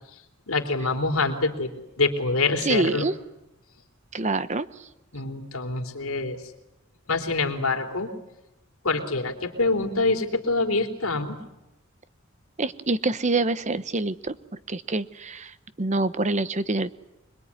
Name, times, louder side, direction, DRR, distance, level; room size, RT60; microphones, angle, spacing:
voice 1, 0.5-1.7 2.0-3.0 5.1-6.4 7.1-8.1 8.8-11.4, left 3 dB, 90° left, 4 dB, 3.4 m, -25 dB
voice 2, 2.6-3.1 4.1-4.7 12.6-16.9, right 3 dB, 35° right, 14 dB, 0.9 m, -26 dB
26.0 x 21.5 x 9.7 m, 0.94 s
head